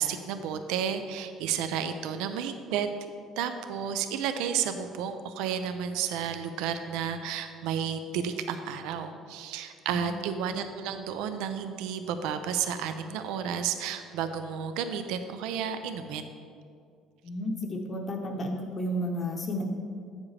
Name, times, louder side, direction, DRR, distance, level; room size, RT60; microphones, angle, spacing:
voice 1, 0.0-2.9 3.4-16.3, right 8 dB, 85° right, 9 dB, 0.4 m, -32 dB
voice 2, 9.9-10.2 17.2-19.6, equal, 35° left, 1 dB, 0.8 m, -32 dB
8.5 x 7.2 x 3.3 m, 2.3 s
cardioid pair, 115°, 0 cm